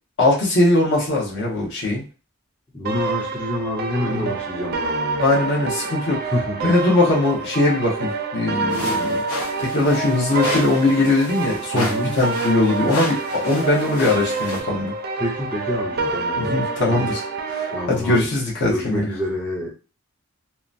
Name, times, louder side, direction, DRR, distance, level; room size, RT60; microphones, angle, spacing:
voice 1, 0.2-2.0 4.0-4.3 5.2-6.2 6.6-9.2 9.6-14.9 16.4-17.2 17.6-19.1, left 2 dB, 55° left, -4 dB, 1.0 m, -20 dB
voice 2, 2.7-5.2 6.3-6.7 11.7-12.2 15.2-16.6 16.9-17.1 17.7-18.3 18.7-19.7, left 1 dB, 5° left, -3 dB, 0.5 m, -27 dB
sound 1, 2.9-17.9, right 3 dB, 45° right, 0.4 m, -27 dB
sound 2, 8.7-14.6, left 2 dB, 90° left, 0.8 m, -32 dB
2.8 x 2.2 x 2.5 m, 0.34 s
head